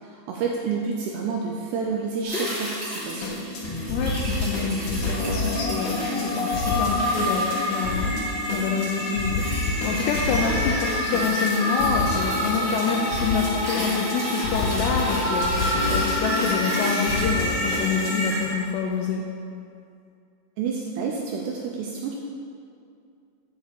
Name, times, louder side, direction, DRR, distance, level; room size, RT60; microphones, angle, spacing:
voice 1, 0.0-3.4 20.6-22.2, right 5 dB, 85° right, 0 dB, 2.4 m, -29 dB
sound 1, 2.2-18.7 19.1-19.2, equal, 20° right, 1.6 m, -35 dB
sound 2, 3.0-18.3, left 3 dB, 65° left, 3.0 m, -30 dB
voice 2, 3.9-19.3, left 5 dB, 80° left, 1 dB, 2.5 m, -27 dB
sound 3, 5.0-18.5, left 1 dB, 20° left, 0.9 m, -28 dB
7.3 x 6.3 x 7.2 m, 2.4 s
omnidirectional pair, 5.4 m